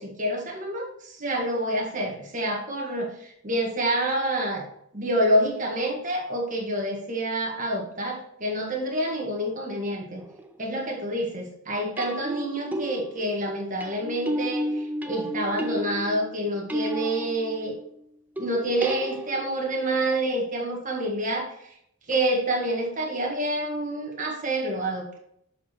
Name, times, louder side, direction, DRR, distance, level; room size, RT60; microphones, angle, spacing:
voice 1, 0.0-4.7 4.9-10.2 10.6-17.8 18.4-21.5 22.1-25.2, right 1 dB, 35° right, 0 dB, 1.6 m, -27 dB
sound 1, 10.2-10.6 12.0-17.9 18.4-19.7 22.1-22.2, equal, 10° right, 0.4 m, -33 dB
7.0 x 4.7 x 4.4 m, 0.71 s
head